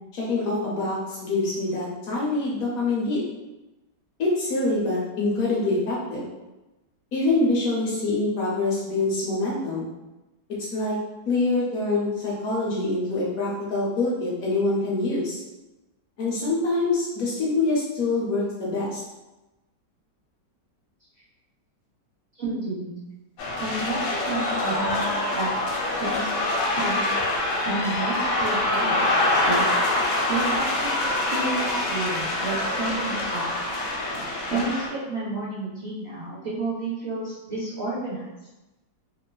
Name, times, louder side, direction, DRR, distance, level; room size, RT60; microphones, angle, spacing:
voice 1, 0.1-3.2 4.2-6.3 7.1-9.9 10.7-11.0 11.3-15.4 16.2-19.0, left 2 dB, 65° left, -5 dB, 1.0 m, -25 dB
voice 2, 22.4-23.0 23.6-25.5 26.0-26.3 26.7-27.2 27.6-29.6 30.3-33.5 34.1-38.2, right 2 dB, 75° right, -8 dB, 0.6 m, -31 dB
sound 1, 23.4-34.9, left 2 dB, 80° left, 1.2 m, -25 dB
2.9 x 2.3 x 2.2 m, 1.0 s
omnidirectional pair, 1.9 m